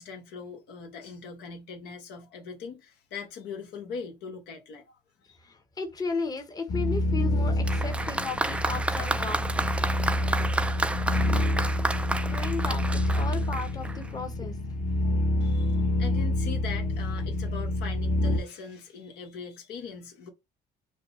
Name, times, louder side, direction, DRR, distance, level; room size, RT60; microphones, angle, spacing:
voice 1, 0.0-5.0 5.3-5.4 15.4-20.3, left 5 dB, 85° left, 1.4 m, -41 dB
voice 2, 5.8-9.4 12.2-14.6, left 4 dB, 20° left, 0.9 m, -34 dB
sound 1, 6.7-18.4, left 1 dB, 50° left, 1.0 m, -27 dB
Applause, 7.6-14.1, right 2 dB, 5° right, 0.3 m, -31 dB
5.2 x 2.3 x 4.1 m
cardioid pair, 110°, 17 cm